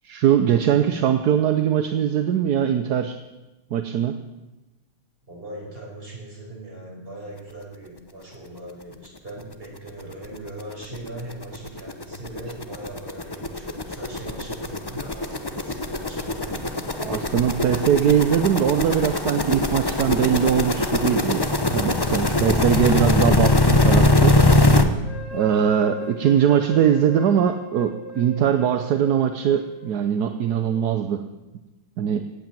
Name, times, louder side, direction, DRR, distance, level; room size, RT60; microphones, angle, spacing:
voice 1, 0.0-3.2 3.7-4.1 17.0-21.4 21.7-24.3 25.3-31.2 32.0-32.2, right 9 dB, 60° right, 8 dB, 1.2 m, -21 dB
voice 2, 5.3-16.8, right 1 dB, 25° right, -2 dB, 5.5 m, -39 dB
sound 1, 9.4-9.5 9.9-10.0 10.2-24.8, left 2 dB, 35° left, 0.3 m, -21 dB
sound 2, 25.0-31.0, left 3 dB, 55° left, 5.9 m, -39 dB
18.0 x 8.8 x 9.1 m, 1.1 s
omnidirectional pair, 2.2 m